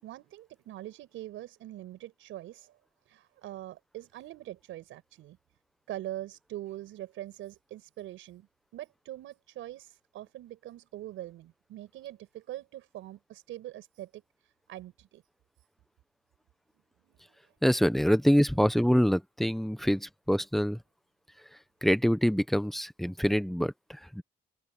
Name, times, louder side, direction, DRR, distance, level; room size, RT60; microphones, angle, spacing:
voice 1, 0.0-2.8 3.1-5.4 5.9-8.5 8.7-15.2 17.0-17.5, right 14 dB, 90° right, 6.5 m, -43 dB
voice 2, 17.6-20.8 21.8-24.2, equal, ahead, 1.1 m, -25 dB
open air
cardioid pair, 90°, 20 cm